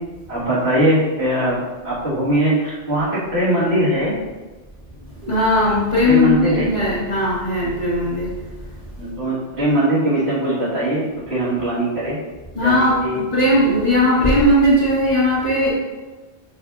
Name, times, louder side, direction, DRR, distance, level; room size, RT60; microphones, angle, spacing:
voice 1, 0.3-4.1 6.0-6.7 9.0-12.2 12.6-13.2, right 1 dB, 75° right, -10 dB, 2.6 m, -20 dB
voice 2, 5.2-8.3 12.6-13.0 13.3-15.7, left 1 dB, 35° left, -12 dB, 2.1 m, -17 dB
12.0 x 4.9 x 2.8 m, 1.2 s
omnidirectional pair, 1.1 m